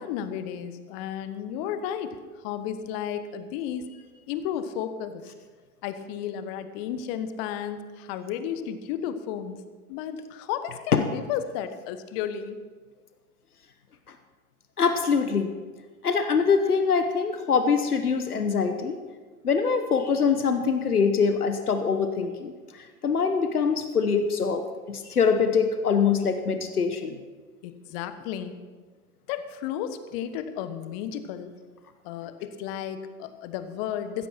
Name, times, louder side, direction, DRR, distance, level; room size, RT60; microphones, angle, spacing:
voice 1, 0.0-3.9 4.3-5.2 5.8-9.6 9.9-12.6 27.6-28.6 29.3-31.5 32.0-34.3, left 9 dB, 40° left, 11 dB, 1.3 m, -33 dB
voice 2, 14.8-15.5 16.0-19.0 19.4-22.5 23.0-27.2, left 5 dB, 80° left, 8 dB, 1.1 m, -23 dB
15.0 x 14.0 x 4.4 m, 1.4 s
figure-of-eight pair, 90°, 44 cm